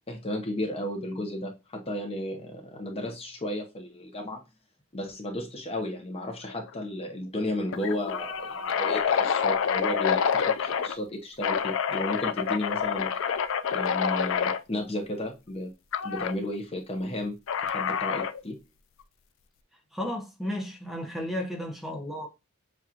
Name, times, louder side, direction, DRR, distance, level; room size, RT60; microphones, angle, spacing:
voice 1, 0.1-4.4 4.9-13.2 13.7-15.7 16.0-17.4 17.6-18.6, left 1 dB, 30° left, 0.7 m, -33 dB
sound 1, 6.5-6.7 7.0-7.1 7.7-11.0 11.4-14.6 15.9-16.3 17.5-18.4, left 7 dB, 65° left, 0.4 m, -27 dB
voice 2, 19.9-22.3, left 1 dB, ahead, 0.8 m, -33 dB
7.3 x 2.5 x 2.8 m
head